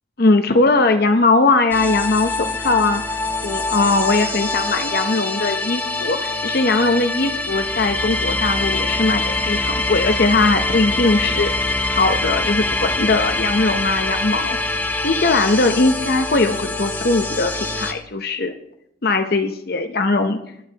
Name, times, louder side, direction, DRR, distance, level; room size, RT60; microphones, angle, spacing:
voice 1, 0.2-3.0 3.4-11.5 11.9-14.6 15.0-18.5 19.0-20.4, left 3 dB, 50° left, 6 dB, 0.7 m, -19 dB
sound 1, 1.7-17.9, left 2 dB, 10° left, 0.7 m, -24 dB
19.0 x 11.0 x 2.9 m, 0.75 s
head